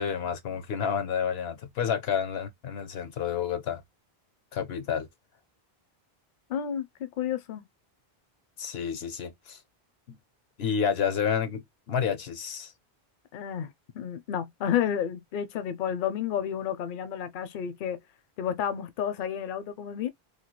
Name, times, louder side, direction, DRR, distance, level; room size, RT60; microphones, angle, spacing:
voice 1, 0.0-3.8 4.5-5.1 8.6-9.6 10.1-10.2 10.6-12.7, left 7 dB, 85° left, 1.0 m, -30 dB
voice 2, 6.5-7.6 13.3-18.0 18.4-20.1, left 9 dB, 60° left, 0.6 m, -31 dB
3.2 x 2.2 x 2.9 m
omnidirectional pair, 1.0 m